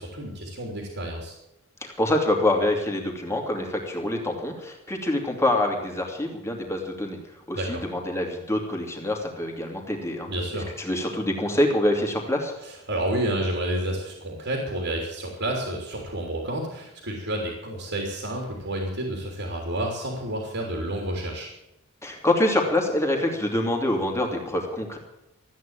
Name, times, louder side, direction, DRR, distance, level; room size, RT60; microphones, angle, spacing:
voice 1, 0.0-1.3 7.5-7.8 10.3-10.7 12.6-21.5, right 1 dB, 55° right, 0 dB, 3.4 m, -30 dB
voice 2, 1.8-7.2 7.5-10.3 10.8-12.5 22.0-25.0, left 1 dB, 15° left, 1 dB, 2.6 m, -25 dB
14.0 x 9.5 x 9.0 m, 0.88 s
head